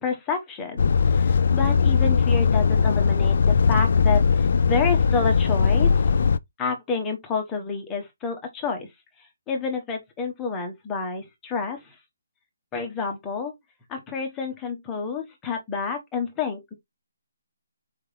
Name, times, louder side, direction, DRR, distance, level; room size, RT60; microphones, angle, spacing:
voice 1, 0.0-6.2 6.6-8.9 9.5-11.9 12.7-13.5 13.9-16.7, left 5 dB, 10° left, 0.9 m, -29 dB
Truck, 0.8-6.4, left 5 dB, 45° left, 0.3 m, -19 dB
4.6 x 3.5 x 3.3 m
hypercardioid pair, 180°, 0 cm